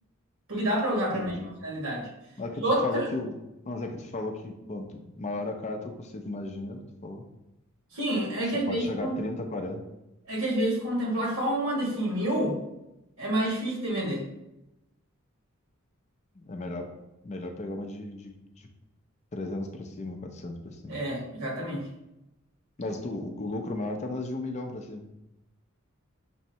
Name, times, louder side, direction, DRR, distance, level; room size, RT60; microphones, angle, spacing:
voice 1, 0.5-1.3 1.6-2.1 2.6-3.1 7.9-9.1 10.3-12.5 13.2-14.2 20.9-21.8, right 1 dB, 90° right, -3 dB, 1.4 m, -28 dB
voice 2, 1.1-1.5 2.4-3.4 3.6-7.2 8.4-9.8 16.4-16.9 17.2-18.7 19.3-21.0 22.8-25.1, left 2 dB, 35° left, 4 dB, 0.4 m, -35 dB
6.0 x 2.1 x 2.7 m, 0.90 s
head